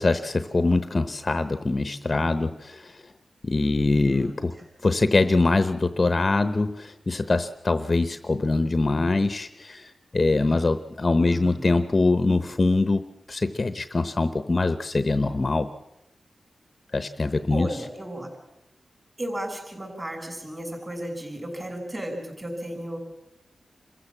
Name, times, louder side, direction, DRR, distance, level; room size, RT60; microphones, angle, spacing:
voice 1, 0.0-3.0 3.4-4.5 4.8-15.7 16.9-17.7, left 3 dB, 30° left, 11 dB, 0.9 m, -23 dB
voice 2, 3.6-4.4 11.2-11.8 17.5-18.3 19.2-23.0, right 1 dB, 20° right, 3 dB, 6.5 m, -34 dB
27.5 x 15.0 x 7.2 m, 0.89 s
wide cardioid pair, 115°, 0 cm